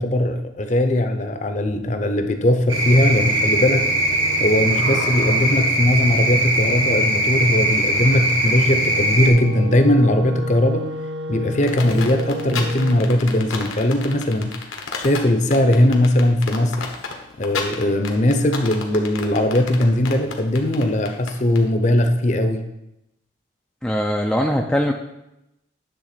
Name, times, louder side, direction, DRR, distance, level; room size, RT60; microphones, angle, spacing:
voice 1, 0.0-3.9 4.4-10.9 11.3-14.5 15.0-16.9 17.4-22.6, left 1 dB, 35° left, 7 dB, 0.7 m, -19 dB
sound 1, 2.7-9.3, right 1 dB, 80° right, 1.8 m, -20 dB
Wind instrument woodwind instrument, 8.6-13.1, left 1 dB, 65° right, 0.7 m, -32 dB
sound 2, 11.6-21.6, left 5 dB, 90° left, 1.3 m, -31 dB
voice 2, 23.8-24.9, equal, 5° left, 1 dB, 0.4 m, -21 dB
10.0 x 3.6 x 6.7 m, 0.89 s
head